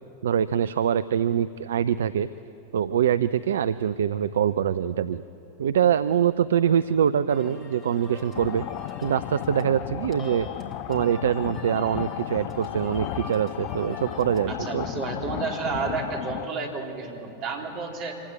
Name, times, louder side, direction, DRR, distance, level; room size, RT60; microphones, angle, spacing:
voice 1, 0.2-2.3 2.7-5.2 5.6-8.7 9.0-10.5 10.9-14.9, right 9 dB, 65° right, 14 dB, 0.4 m, -24 dB
sound 1, 7.3-14.5, left 2 dB, 20° left, 3.0 m, -43 dB
sound 2, 8.3-16.4, left 13 dB, 45° left, 0.5 m, -34 dB
voice 2, 14.5-18.2, right 4 dB, 40° right, 0 dB, 3.8 m, -31 dB
25.0 x 17.0 x 9.1 m, 2.9 s
figure-of-eight pair, 90°, 0 cm